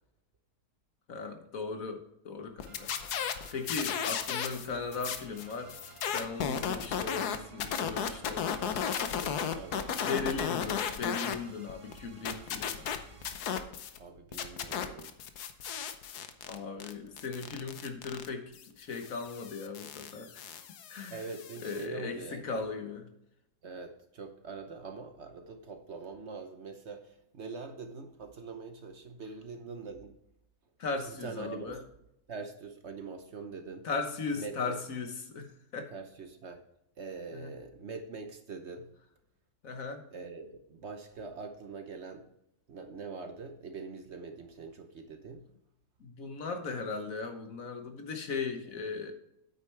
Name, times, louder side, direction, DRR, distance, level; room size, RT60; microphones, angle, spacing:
voice 1, 1.1-3.2 3.5-5.7 6.1-9.3 10.0-12.9 16.4-20.6 20.9-21.2 21.6-23.1 30.8-31.8 33.8-35.9 37.3-37.5 39.6-40.0 46.0-49.1, left 4 dB, 60° left, 6 dB, 1.6 m, -38 dB
sound 1, 2.6-4.7 4.9-11.4 11.7-14.0 14.3-21.8, left 8 dB, 85° left, 1.4 m, -35 dB
sound 2, 2.7-13.3, right 3 dB, 30° right, 0.6 m, -55 dB
voice 2, 9.5-10.1 14.0-15.1 21.1-22.6 23.6-30.1 31.1-31.8 32.3-33.9 34.3-34.8 35.9-36.6 37.0-38.9 40.1-42.3 42.7-45.5, right 4 dB, 55° right, 6 dB, 1.0 m, -43 dB
9.1 x 8.4 x 3.3 m, 0.79 s
omnidirectional pair, 1.6 m